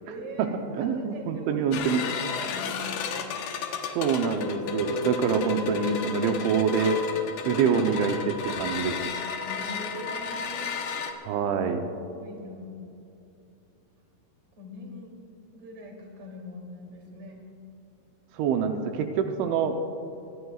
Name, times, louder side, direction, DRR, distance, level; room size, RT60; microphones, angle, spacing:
voice 1, 0.0-3.2 7.5-7.8 9.4-10.8 12.1-12.8 14.5-15.1 15.5-17.4, equal, 35° right, -1 dB, 3.1 m, -42 dB
voice 2, 0.8-2.0 4.0-7.0 7.5-9.0 11.2-11.8 18.3-19.8, right 6 dB, 85° right, 5 dB, 3.1 m, -25 dB
sound 1, 1.7-11.1, left 5 dB, 70° left, 2.5 m, -32 dB
24.5 x 19.0 x 2.4 m, 2.7 s
omnidirectional pair, 5.3 m